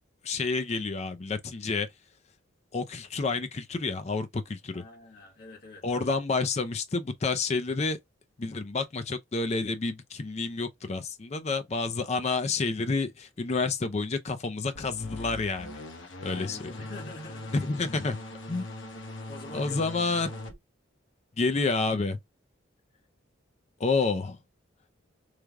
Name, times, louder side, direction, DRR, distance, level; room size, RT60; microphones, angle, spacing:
voice 1, 0.2-1.9 2.7-4.8 5.8-8.0 8.4-15.8 16.2-16.7 17.5-18.2 18.5-18.6 19.5-20.3 21.4-22.2 23.8-24.4, left 3 dB, 35° left, 0.4 m, -29 dB
voice 2, 4.7-6.1 16.3-17.6 18.5-18.7 19.3-19.8, left 1 dB, 50° left, 1.5 m, -45 dB
sound 1, 14.7-20.5, left 2 dB, 70° left, 1.0 m, -41 dB
3.3 x 2.2 x 3.5 m
head